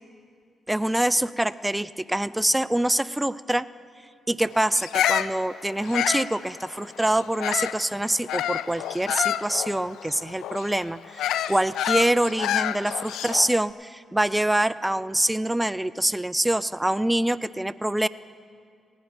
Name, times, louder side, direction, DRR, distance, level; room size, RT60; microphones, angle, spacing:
voice 1, 0.7-3.7 4.3-18.1, right 1 dB, 10° right, 18 dB, 0.4 m, -25 dB
Bird vocalization bird call bird song, 4.7-7.8 8.3-13.6, left 11 dB, 80° left, 0.3 m, -28 dB
17.5 x 10.0 x 5.2 m, 2.2 s
supercardioid pair, 50°, 0 cm